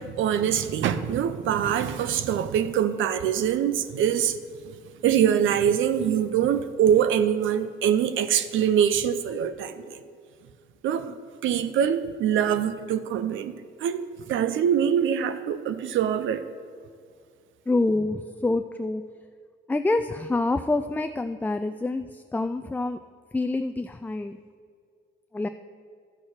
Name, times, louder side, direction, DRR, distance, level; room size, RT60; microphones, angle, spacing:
voice 1, 0.0-4.4 4.6-4.7 5.0-10.0 10.8-11.2 11.4-13.5 13.8-16.4, right 9 dB, 80° right, 0.7 m, -24 dB
voice 2, 17.7-19.0 19.7-23.0 23.3-24.4 25.3-25.5, left 2 dB, 10° left, 0.3 m, -26 dB
13.5 x 6.3 x 4.4 m
cardioid pair, 90°, 20 cm